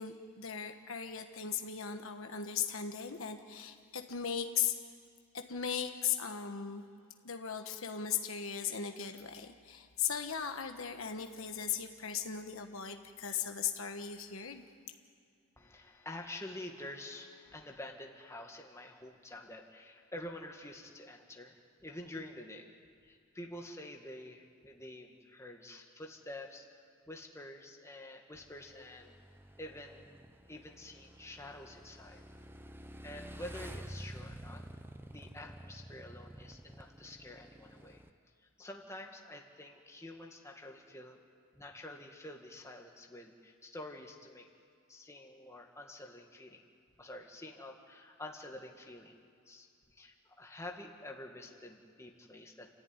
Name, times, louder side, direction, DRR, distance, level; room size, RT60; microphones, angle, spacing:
voice 1, 0.0-4.7 5.3-6.8 7.2-14.6, left 8 dB, 65° left, 5 dB, 1.4 m, -37 dB
voice 2, 15.6-22.7 23.0-26.7 27.1-29.1 29.6-30.1 30.5-32.2 33.0-34.6 35.1-38.0 38.6-41.2 41.5-44.5 44.9-46.6 47.0-49.2 49.5-52.7, left 1 dB, 15° left, 1 dB, 1.9 m, -48 dB
Motorcycle / Engine, 28.3-38.1, right 1 dB, 10° right, 0.7 m, -50 dB
29.5 x 14.0 x 9.8 m, 2.3 s
head